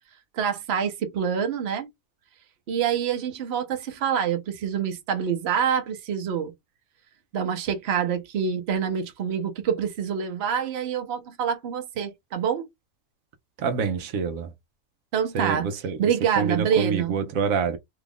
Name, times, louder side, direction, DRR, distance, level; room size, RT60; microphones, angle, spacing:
voice 1, 0.3-1.9 2.7-6.5 7.3-12.7 15.1-15.7 16.0-17.1, right 8 dB, 55° right, 0.9 m, -26 dB
voice 2, 13.6-14.5 15.3-16.0 16.4-17.8, right 6 dB, 80° right, 1.0 m, -26 dB
2.9 x 2.4 x 3.5 m
omnidirectional pair, 1.4 m